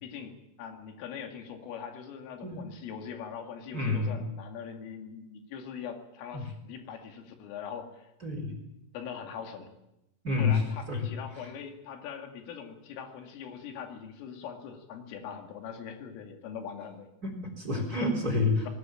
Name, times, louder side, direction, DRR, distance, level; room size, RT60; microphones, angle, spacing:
voice 1, 0.0-8.1 8.9-9.7 10.4-17.1, left 7 dB, 90° left, 5 dB, 4.8 m, -42 dB
voice 2, 3.7-4.2 6.3-6.5 8.2-8.5 10.2-11.1 11.4-11.5 17.2-18.7, left 3 dB, 20° right, 3 dB, 3.8 m, -29 dB
19.5 x 19.5 x 8.9 m, 0.89 s
omnidirectional pair, 5.6 m